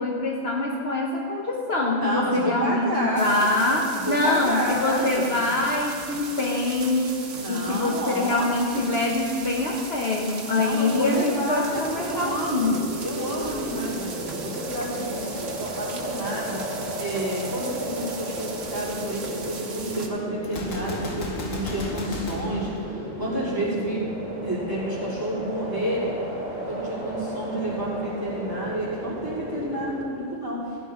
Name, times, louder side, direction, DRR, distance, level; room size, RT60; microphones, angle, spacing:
voice 1, 0.0-12.7, left 2 dB, 55° left, -1 dB, 1.2 m, -24 dB
voice 2, 2.0-3.2 3.9-5.5 7.3-8.5 8.7-8.9 10.5-24.0 24.4-26.2 26.7-30.9, right 1 dB, 15° right, -10 dB, 3.7 m, -30 dB
sound 1, 3.2-20.1, right 4 dB, 70° right, 1.4 m, -38 dB
sound 2, 11.6-30.0, equal, 35° right, 2.7 m, -34 dB
Gunshot gunfire, 20.4-23.5, left 2 dB, 90° left, 1.6 m, -35 dB
15.5 x 9.9 x 3.7 m, 2.2 s
omnidirectional pair, 1.3 m